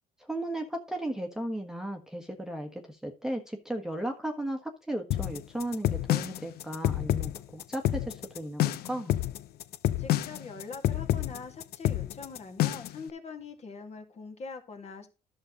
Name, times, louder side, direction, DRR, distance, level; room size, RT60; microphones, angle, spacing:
voice 1, 0.2-9.2, right 1 dB, 5° right, 2 dB, 1.4 m, -35 dB
sound 1, 5.1-13.0, left 13 dB, 65° left, 0.7 m, -28 dB
voice 2, 10.0-15.1, left 4 dB, 40° left, 5 dB, 2.2 m, -43 dB
11.0 x 6.5 x 3.9 m, 0.29 s
cardioid pair, 110°, 17 cm